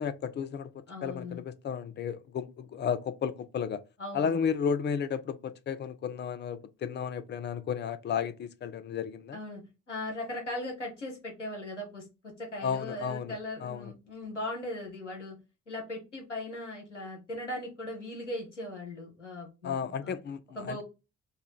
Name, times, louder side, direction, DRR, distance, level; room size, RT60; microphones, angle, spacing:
voice 1, 0.0-0.7 1.0-3.8 4.1-9.4 12.6-13.9 19.6-20.8, left 7 dB, 30° left, 0.5 m, -33 dB
voice 2, 0.9-1.4 4.0-4.4 9.3-9.6 9.9-15.4 15.7-20.1 20.6-20.8, left 1 dB, 90° left, 0.7 m, -39 dB
3.2 x 2.3 x 3.7 m
figure-of-eight pair, 40°, 35 cm